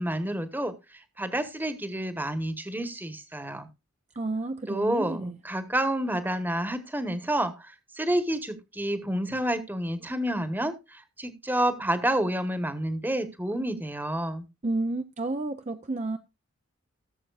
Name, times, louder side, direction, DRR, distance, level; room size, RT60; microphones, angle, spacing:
voice 1, 0.0-3.7 4.7-14.5, right 1 dB, 10° right, 1.2 m, -29 dB
voice 2, 4.2-5.4 14.6-16.2, right 2 dB, 35° right, 0.6 m, -31 dB
17.0 x 7.4 x 2.4 m
head